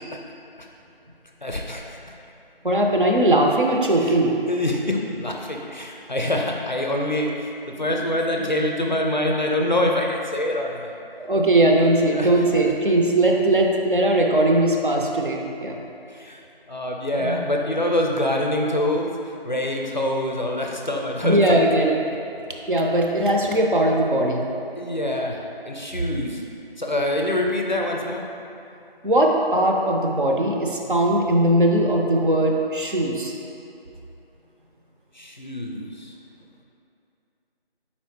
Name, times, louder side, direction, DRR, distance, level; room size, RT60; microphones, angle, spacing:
voice 1, 1.4-2.0 4.0-4.2 4.5-11.0 12.1-12.6 16.1-16.4 16.7-21.6 23.3-23.5 24.8-26.4 26.8-28.3 35.1-36.1, left 1 dB, 50° left, 0 dB, 0.4 m, -25 dB
voice 2, 2.6-4.3 11.2-15.8 17.2-17.4 21.2-22.0 22.7-24.5 29.0-33.3, right 1 dB, 55° right, 0 dB, 0.6 m, -19 dB
4.3 x 4.2 x 2.9 m, 2.7 s
figure-of-eight pair, 170°, 30 cm